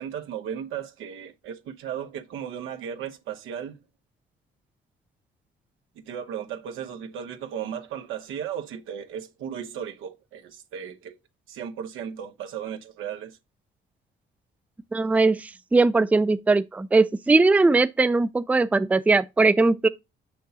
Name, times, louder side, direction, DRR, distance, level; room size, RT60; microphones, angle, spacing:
voice 1, 0.0-3.8 6.1-11.2 11.5-13.4, right 8 dB, 90° right, 0.9 m, -35 dB
voice 2, 14.9-19.9, right 3 dB, 5° right, 0.4 m, -20 dB
6.6 x 6.1 x 2.7 m
cardioid pair, 90°, 20 cm